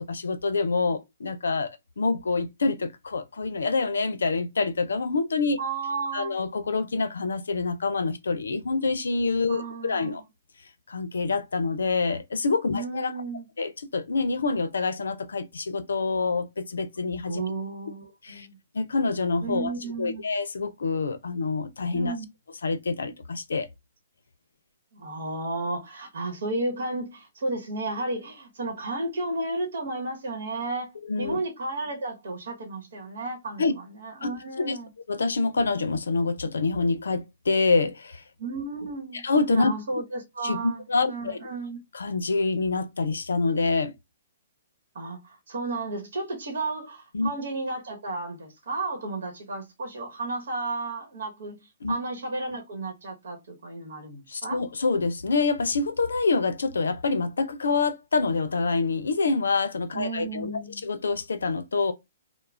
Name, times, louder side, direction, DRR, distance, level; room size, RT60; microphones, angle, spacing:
voice 1, 0.1-1.7 2.0-5.6 6.1-10.2 10.9-13.1 13.6-17.4 18.2-18.5 18.7-19.7 20.0-22.1 22.6-23.7 31.1-31.4 33.6-33.7 34.2-34.3 34.6-34.8 35.1-38.2 39.2-39.7 40.4-40.6 40.9-41.4 41.9-43.9 47.1-47.3 51.8-51.9 54.3-61.9, left 4 dB, 80° left, 0.5 m, -26 dB
voice 2, 5.6-6.5 9.5-10.2 12.7-13.4 17.3-18.6 19.4-20.2 21.9-22.2 24.9-34.9 38.4-39.2 39.5-41.8 44.9-54.6 59.9-60.8, right 2 dB, 70° right, 1.0 m, -33 dB
2.3 x 2.0 x 3.2 m
hypercardioid pair, 130°, 0 cm